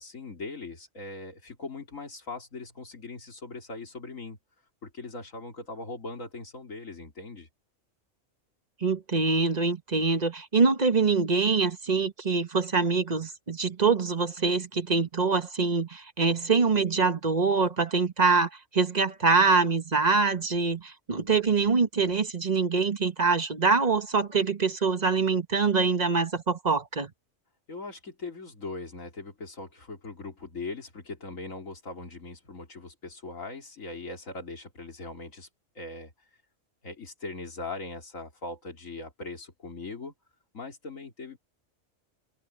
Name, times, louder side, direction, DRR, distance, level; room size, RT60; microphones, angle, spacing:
voice 1, 0.0-4.4 4.8-7.5 27.7-35.5 35.8-36.1 36.8-40.1 40.5-41.4, left 3 dB, 80° left, 3.6 m, -40 dB
voice 2, 8.8-27.1, right 4 dB, 35° right, 1.3 m, -24 dB
omnidirectional pair, 1.3 m